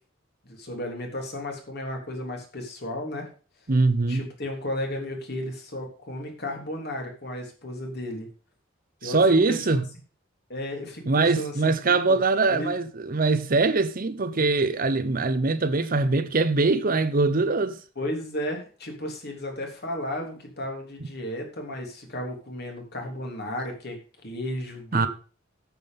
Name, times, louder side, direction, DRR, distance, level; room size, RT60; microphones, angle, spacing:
voice 1, 0.4-3.3 4.1-8.3 9.0-9.8 10.5-11.7 12.1-12.2 12.5-12.7 17.9-24.0 24.2-25.1, left 1 dB, 55° left, 3.2 m, -34 dB
voice 2, 3.7-4.2 9.0-9.8 11.1-17.8 24.9-25.1, right 3 dB, 45° right, 0.8 m, -22 dB
9.4 x 7.5 x 5.3 m
head